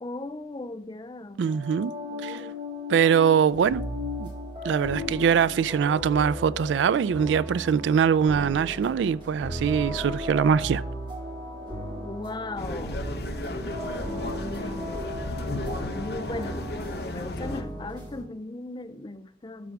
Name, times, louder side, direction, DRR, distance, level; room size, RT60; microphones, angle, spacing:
voice 1, 0.0-1.4 2.0-2.5 12.0-13.1 14.1-15.1 15.8-19.7, left 2 dB, 25° left, 0.4 m, -38 dB
sound 1, 1.4-17.3, left 3 dB, 55° right, 1.9 m, -41 dB
voice 2, 1.4-1.9 2.2-2.4 2.9-3.8 4.2-4.3 4.6-10.8, right 7 dB, 85° right, 0.3 m, -23 dB
sound 2, 3.5-18.2, equal, 30° right, 4.2 m, -37 dB
sound 3, 12.6-17.6, left 1 dB, 60° left, 0.9 m, -34 dB
13.0 x 6.0 x 3.4 m
head